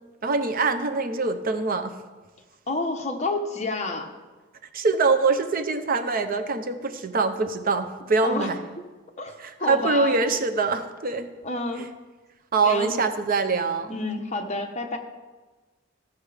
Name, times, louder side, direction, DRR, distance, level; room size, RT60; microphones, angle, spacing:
voice 1, 0.2-1.9 4.7-8.6 9.4-11.3 12.5-13.9, right 4 dB, 45° right, 9 dB, 0.6 m, -24 dB
voice 2, 2.7-4.1 8.2-8.6 9.2-10.2 11.4-11.9 12.6-12.9 13.9-15.0, left 2 dB, 35° left, 3 dB, 1.0 m, -29 dB
14.5 x 6.0 x 4.9 m, 1.3 s
head